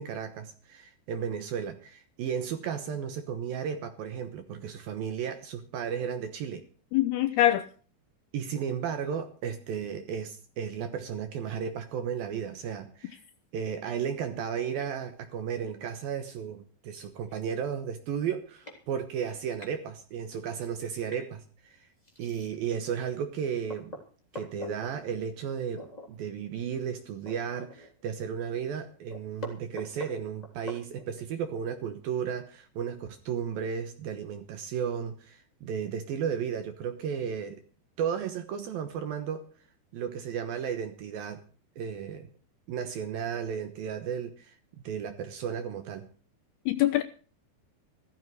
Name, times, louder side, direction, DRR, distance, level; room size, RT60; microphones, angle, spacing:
voice 1, 0.0-6.6 8.3-13.2 13.5-21.9 22.2-24.0 24.3-37.6 38.0-39.5 39.9-41.4 41.8-42.3 42.7-44.6 44.8-46.1, right 7 dB, 70° right, 2.4 m, -34 dB
voice 2, 6.9-7.7 46.7-47.0, left 14 dB, 80° left, 2.4 m, -23 dB
sound 1, 14.7-14.9 16.4-16.5 17.0-17.1 17.3-17.6 18.2-18.3 18.6-18.8 19.2-19.7 21.1-21.3 22.0-22.7 23.2-23.3 23.7-24.9 25.7-26.1 26.4-26.5 26.9-28.1 28.4-28.5 28.8-31.3, left 1 dB, 10° left, 2.4 m, -44 dB
16.0 x 14.0 x 4.8 m
omnidirectional pair, 5.4 m